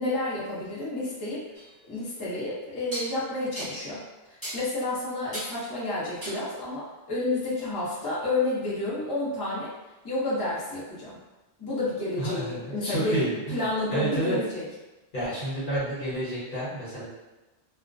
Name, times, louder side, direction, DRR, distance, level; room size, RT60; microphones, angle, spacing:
voice 1, 0.0-1.4 1.9-4.0 4.5-9.7 10.0-11.2 11.6-13.2 13.5-14.7, left 2 dB, 25° left, -10 dB, 0.6 m, -30 dB
sound 1, 1.5-1.7 2.9-3.1 3.6-3.8 4.4-4.6 5.3-5.6 6.2-6.5, right 1 dB, 15° right, 0.9 m, -36 dB
voice 2, 12.2-13.6 13.9-14.4 15.1-17.0, right 1 dB, 50° left, -9 dB, 1.1 m, -30 dB
2.4 x 2.1 x 2.4 m, 1.1 s
omnidirectional pair, 1.1 m